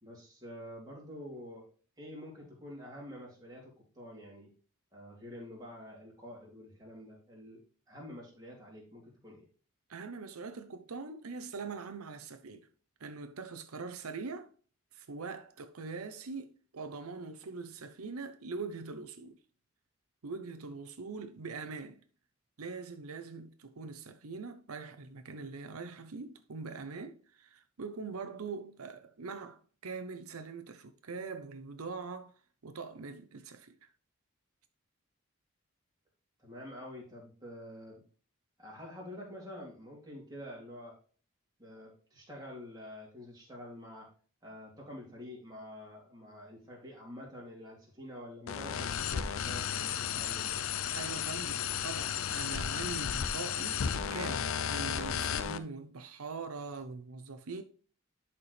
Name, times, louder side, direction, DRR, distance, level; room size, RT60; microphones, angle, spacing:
voice 1, 0.0-1.7 2.0-4.5 4.9-7.6 7.9-9.4 36.4-38.0 38.6-41.0 41.6-44.1 44.4-50.6, left 1 dB, 20° right, 2.8 m, -47 dB
voice 2, 9.9-12.7 13.0-14.5 14.9-19.4 20.2-22.0 22.6-32.3 32.6-33.9 50.9-53.8 54.1-57.6, right 4 dB, 90° right, 0.7 m, -42 dB
sound 1, 48.5-55.6, left 8 dB, 75° left, 0.5 m, -34 dB
11.0 x 4.4 x 3.3 m
head